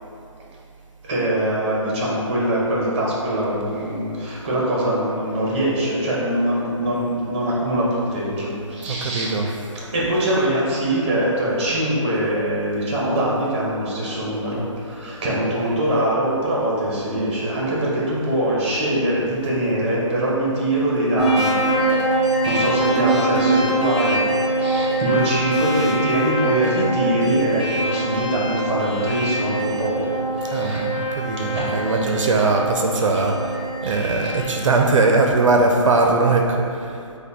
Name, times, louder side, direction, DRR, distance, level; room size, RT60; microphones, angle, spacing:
voice 1, 1.0-9.3 9.9-21.5 22.4-24.2 24.6-30.9 31.5-32.0 33.8-33.9, right 1 dB, 20° right, -5 dB, 0.7 m, -23 dB
voice 2, 8.8-9.6 30.4-37.0, right 3 dB, 75° right, 2 dB, 0.4 m, -20 dB
sound 1, 21.2-34.8, right 2 dB, 15° left, 0.7 m, -23 dB
5.2 x 2.1 x 2.6 m, 2.5 s
hypercardioid pair, 160°, 17 cm